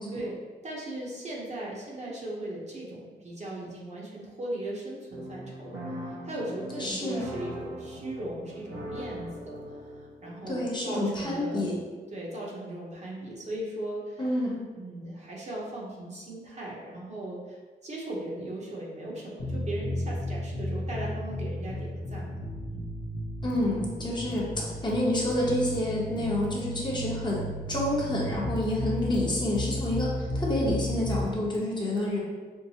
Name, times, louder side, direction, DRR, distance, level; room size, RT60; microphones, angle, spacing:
voice 1, 0.1-9.6 9.8-11.6 12.1-22.4 22.7-22.8, right 1 dB, 40° right, -4 dB, 0.8 m, -38 dB
sound 1, 5.1-10.7, equal, 85° right, 0.7 m, -41 dB
voice 2, 6.8-7.3 10.5-11.8 14.2-14.6 23.4-32.2, left 1 dB, 25° left, -5 dB, 0.8 m, -28 dB
sound 2, 19.4-31.3, left 1 dB, 70° left, 0.8 m, -34 dB
4.5 x 2.1 x 2.7 m, 1.4 s
wide cardioid pair, 100°, 18 cm